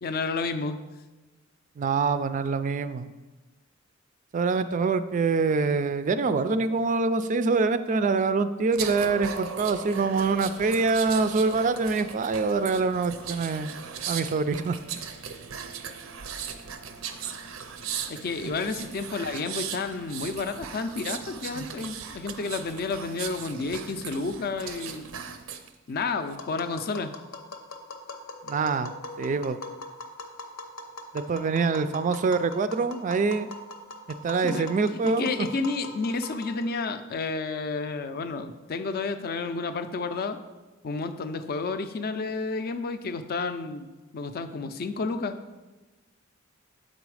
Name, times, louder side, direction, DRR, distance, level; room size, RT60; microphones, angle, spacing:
voice 1, 0.0-0.8 18.1-25.1 25.9-27.1 34.4-40.4 40.8-45.4, left 4 dB, 50° left, 10 dB, 0.4 m, -31 dB
voice 2, 1.8-3.1 4.3-13.8 14.1-14.8 18.4-18.5 28.5-28.9 29.2-29.6 31.1-33.5 34.1-35.5, right 4 dB, 40° right, 12 dB, 0.3 m, -25 dB
sound 1, 8.7-25.7 26.1-26.4, right 7 dB, 85° right, 0.6 m, -38 dB
Tap, 26.4-36.8, left 2 dB, 80° left, 0.8 m, -42 dB
7.7 x 4.0 x 4.8 m, 1.2 s
head